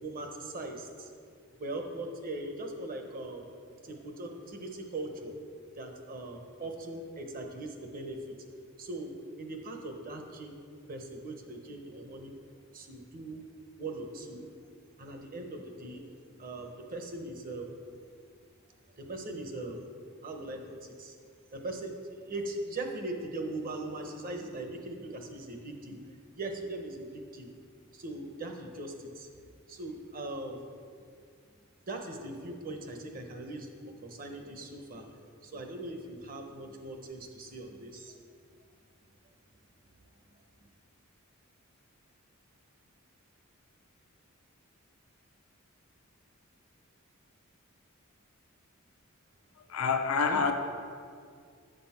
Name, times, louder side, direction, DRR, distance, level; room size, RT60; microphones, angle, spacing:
voice 1, 0.0-1.1 1.6-3.5 3.8-5.3 5.7-8.2 8.8-10.6 10.9-12.4 12.7-13.4 13.8-14.5 15.0-17.8 18.9-19.8 20.2-21.2 21.5-27.5 27.9-29.3 29.7-30.7 31.6-38.2 40.6-40.7 50.3-50.4, right 2 dB, 40° right, 4 dB, 0.9 m, -40 dB
voice 2, 49.7-50.5, left 5 dB, 80° left, 5 dB, 0.5 m, -27 dB
7.8 x 6.3 x 4.3 m, 2.2 s
head